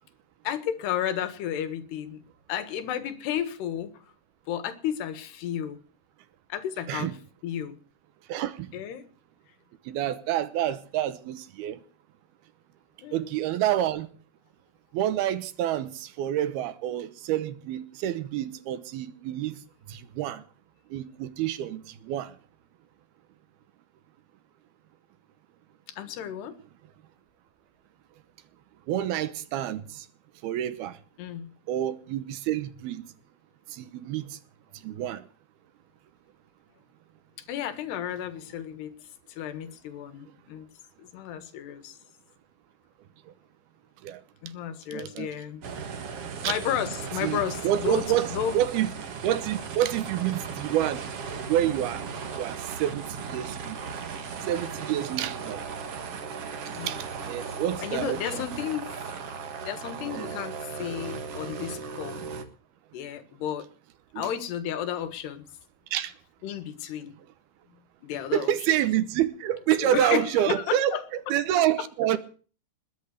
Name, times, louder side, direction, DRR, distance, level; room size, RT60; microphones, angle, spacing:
voice 1, 0.5-2.2 2.5-4.0 4.5-5.8 6.5-7.2 7.4-7.8 8.7-9.1 13.0-13.3 25.9-26.6 31.2-31.5 37.5-38.9 39.3-40.7 41.0-42.0 44.4-45.7 46.4-48.6 56.7-57.0 57.8-58.9 59.6-62.2 62.9-63.7 64.2-65.5 66.4-67.1 67.7-68.5 69.8-71.1, left 10 dB, 80° left, 3.6 m, -33 dB
voice 2, 8.3-8.7 9.9-11.8 13.1-14.1 14.9-19.6 19.9-20.4 20.9-22.3 28.9-30.1 30.4-31.0 31.7-33.0 33.7-34.4 34.8-35.3 44.0-44.2 44.9-45.3 46.4-46.6 47.2-47.4 47.6-48.3 48.5-48.9 49.2-51.0 51.5-52.0 52.3-53.8 54.5-55.6 56.9-58.4 60.1-60.4 64.1-64.3 65.9-66.1 68.3-71.0 71.3-72.2, right 12 dB, 75° right, 2.8 m, -28 dB
sound 1, 45.6-62.4, right 5 dB, 50° right, 2.0 m, -37 dB
21.0 x 8.1 x 8.0 m
omnidirectional pair, 4.7 m